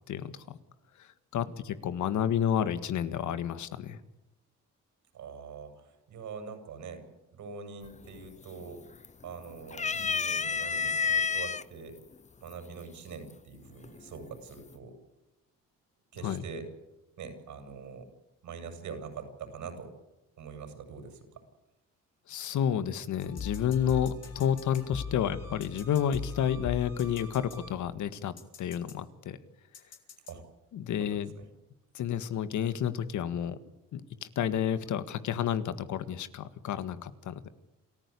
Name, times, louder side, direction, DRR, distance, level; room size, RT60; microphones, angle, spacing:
voice 1, 0.1-0.6 1.0-4.0 16.2-16.4 22.3-28.3 28.6-29.4 30.7-31.3 31.9-33.6 33.9-37.5, left 9 dB, 75° left, 13 dB, 1.8 m, -30 dB
voice 2, 5.1-7.0 7.3-8.8 9.2-12.0 12.4-15.0 16.1-16.7 17.2-18.1 18.4-19.9 20.4-21.4 30.3-30.4 30.9-31.5, right 5 dB, 75° right, 6 dB, 6.9 m, -44 dB
sound 1, 7.8-8.3 8.6-9.3 9.7-11.6 12.5-12.6 13.8-14.3, left 5 dB, 25° left, 0.7 m, -29 dB
sound 2, 23.2-28.0 28.4-28.9 29.7-30.3, left 6 dB, 55° left, 4.9 m, -41 dB
28.0 x 15.0 x 8.5 m, 1.0 s
cardioid pair, 90°, 30 cm